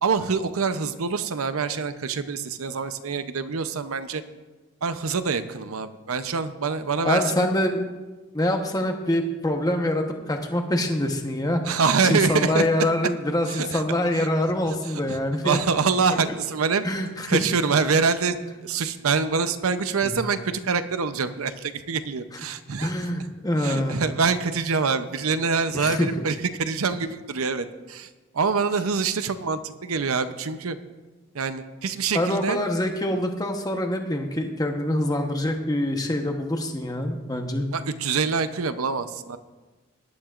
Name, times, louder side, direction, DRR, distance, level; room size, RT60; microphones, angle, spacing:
voice 1, 0.0-4.2 4.8-7.5 11.6-12.9 13.5-13.8 14.2-14.3 14.7-16.9 17.3-22.9 23.6-30.8 31.3-32.6 37.7-39.4, right 5 dB, 80° right, 11 dB, 0.7 m, -25 dB
voice 2, 7.0-7.8 8.3-15.6 16.8-17.4 20.0-20.1 22.8-24.0 25.7-26.2 32.1-37.7, left 1 dB, 15° left, 4 dB, 1.0 m, -25 dB
19.0 x 12.0 x 2.5 m, 1.2 s
head